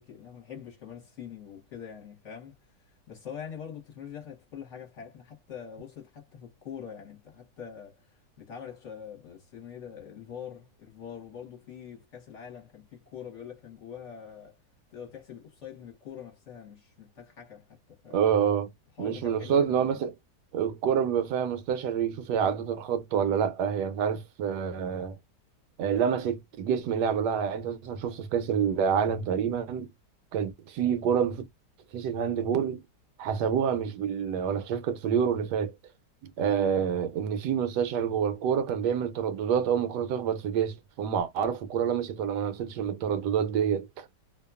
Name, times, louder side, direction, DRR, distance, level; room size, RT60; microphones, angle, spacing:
voice 1, 0.0-14.6 14.9-18.3 19.0-20.0, left 8 dB, 50° left, 1.1 m, -44 dB
voice 2, 18.1-18.7 19.0-20.1 20.5-25.2 25.8-29.9 30.3-31.5 31.9-32.8 33.2-35.7 36.2-44.1, right 8 dB, 80° right, 1.1 m, -27 dB
2.8 x 2.2 x 2.3 m
omnidirectional pair, 1.8 m